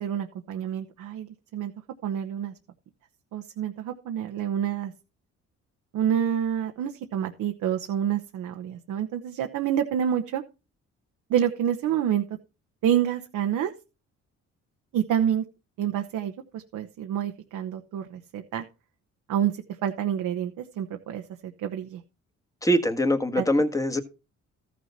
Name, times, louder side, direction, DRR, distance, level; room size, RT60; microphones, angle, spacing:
voice 1, 0.0-1.7 2.0-2.5 3.3-4.9 5.9-10.4 11.3-12.2 12.8-13.7 14.9-15.4 15.8-18.6 19.3-19.5 19.8-22.0 23.4-23.5, right 9 dB, 80° right, 1.1 m, -28 dB
voice 2, 22.6-24.0, equal, 10° left, 1.5 m, -23 dB
14.0 x 6.3 x 4.2 m
cardioid pair, 90°, 30 cm